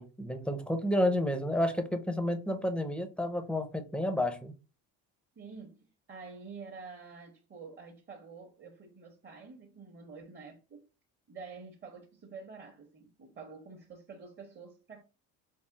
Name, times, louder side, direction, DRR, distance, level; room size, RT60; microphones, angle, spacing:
voice 1, 0.0-4.5, left 1 dB, 5° left, 0.5 m, -30 dB
voice 2, 5.4-10.9 11.3-15.0, right 4 dB, 30° right, 0.8 m, -48 dB
3.4 x 2.0 x 3.8 m
cardioid pair, 115°, 34 cm